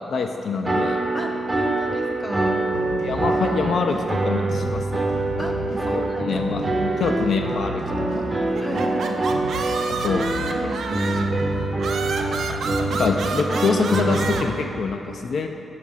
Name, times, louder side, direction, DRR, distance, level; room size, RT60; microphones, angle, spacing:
voice 1, 0.1-1.0 3.0-5.1 6.0-6.6 7.0-8.3 10.0-10.3 12.9-15.5, left 4 dB, 60° left, 4 dB, 0.3 m, -25 dB
sound 1, 0.6-14.4, right 2 dB, 20° right, 0.6 m, -25 dB
voice 2, 1.1-2.7 5.4-7.0 8.6-9.2 10.1-11.4, equal, 15° left, 1 dB, 0.7 m, -32 dB
sound 2, 2.7-14.6, left 1 dB, 80° left, 1.3 m, -35 dB
sound 3, 8.5-11.4 11.8-14.4, right 4 dB, 70° right, 0.5 m, -29 dB
6.9 x 4.8 x 5.5 m, 3.0 s
wide cardioid pair, 130°, 0 cm